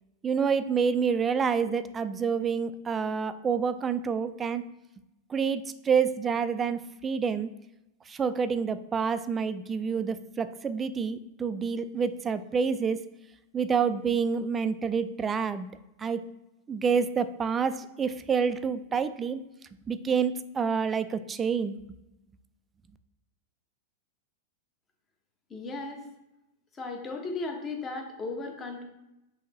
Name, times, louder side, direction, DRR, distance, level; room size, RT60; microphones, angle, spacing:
voice 1, 0.2-4.6 5.3-7.5 8.1-13.0 13.5-15.7 16.0-16.2 16.7-19.4 19.9-21.8, right 6 dB, 20° right, 12 dB, 0.3 m, -28 dB
voice 2, 25.5-26.1 26.7-28.8, left 3 dB, 25° left, 2 dB, 1.0 m, -36 dB
5.6 x 2.8 x 3.0 m, 0.94 s
hypercardioid pair, 105°, 0 cm